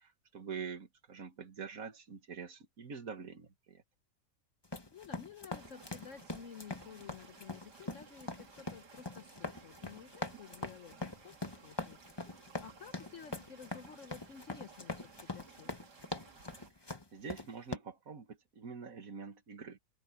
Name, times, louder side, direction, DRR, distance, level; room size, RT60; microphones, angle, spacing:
voice 1, 0.0-3.8 17.1-19.8, right 6 dB, 55° right, 2.0 m, -45 dB
sound 1, 4.6-17.8, left 2 dB, 15° left, 1.2 m, -43 dB
voice 2, 4.9-15.7, left 7 dB, 55° left, 1.0 m, -53 dB
sound 2, 5.5-16.7, right 6 dB, 75° right, 2.6 m, -58 dB
omnidirectional pair, 1.8 m